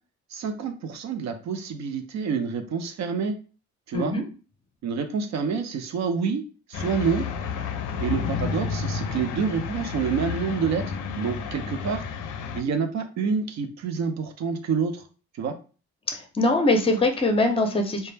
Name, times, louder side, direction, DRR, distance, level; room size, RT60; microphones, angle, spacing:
voice 1, 0.3-3.4 3.9-4.1 4.8-6.4 6.7-7.2 8.0-10.9 11.2-12.0 12.5-15.0 15.4-15.5, right 6 dB, 65° right, 7 dB, 0.5 m, -27 dB
voice 2, 3.9-4.2 16.1-18.1, left 2 dB, 20° left, 5 dB, 0.5 m, -22 dB
sound 1, 6.7-12.6, left 6 dB, 90° left, 0.5 m, -31 dB
2.2 x 2.0 x 3.2 m, 0.36 s
cardioid pair, 90°, 30 cm